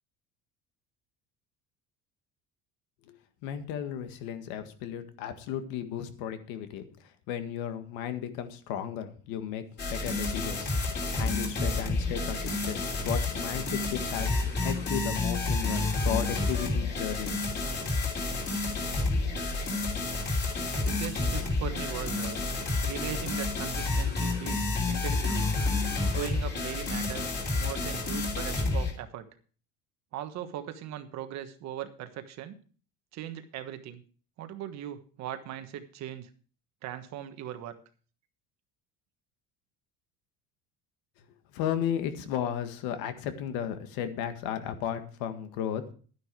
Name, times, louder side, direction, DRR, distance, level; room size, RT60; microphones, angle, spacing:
voice 1, 3.4-6.9 7.3-9.6 9.9-10.8 11.1-17.5 41.5-45.8, left 9 dB, 75° left, 9 dB, 1.7 m, -34 dB
sound 1, 9.8-28.9, left 3 dB, 30° left, 3.1 m, -30 dB
voice 2, 20.7-22.4 22.8-25.5 26.1-29.3 30.1-32.6 33.1-34.0 34.4-36.3 36.8-37.8, right 10 dB, 50° right, 9 dB, 1.3 m, -39 dB
12.0 x 9.9 x 4.7 m, 0.41 s
cardioid pair, 175°, 36 cm